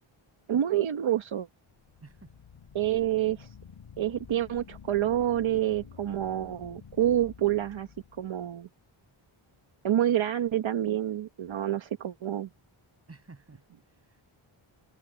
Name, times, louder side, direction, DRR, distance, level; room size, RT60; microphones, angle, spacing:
voice 1, 0.5-1.5 2.7-3.5 4.0-7.9 8.2-8.7 9.8-12.5, right 11 dB, 65° right, 1.0 m, -28 dB
sound 1, 1.7-8.7, left 7 dB, 75° left, 4.9 m, -50 dB
voice 2, 2.0-2.3 13.1-14.2, right 3 dB, 30° right, 6.4 m, -52 dB
wide cardioid pair, 170°, 50 cm